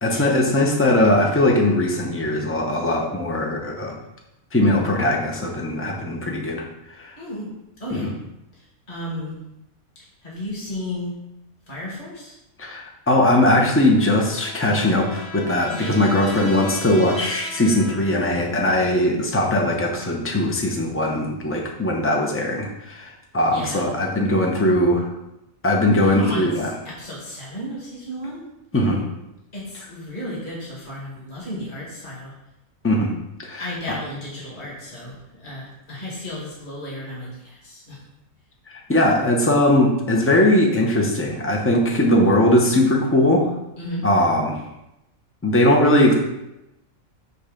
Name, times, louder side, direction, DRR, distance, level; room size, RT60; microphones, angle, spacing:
voice 1, 0.0-4.0 4.5-6.6 7.0-7.2 7.9-8.1 12.6-25.1 25.6-26.7 28.7-29.0 32.8-33.1 33.4-33.6 38.7-43.5 44.0-44.6 45.4-46.1, left 1 dB, 10° left, 1 dB, 0.7 m, -20 dB
voice 2, 7.2-8.1 8.5-9.4 10.2-11.2 11.7-12.4 15.7-16.0 23.5-23.9 26.0-28.5 29.5-32.4 33.6-38.0 43.8-44.1, left 1 dB, 35° left, -5 dB, 2.1 m, -33 dB
Trumpet, 13.5-18.7, left 2 dB, 70° left, 3.1 m, -38 dB
8.0 x 3.3 x 5.0 m, 0.89 s
omnidirectional pair, 1.5 m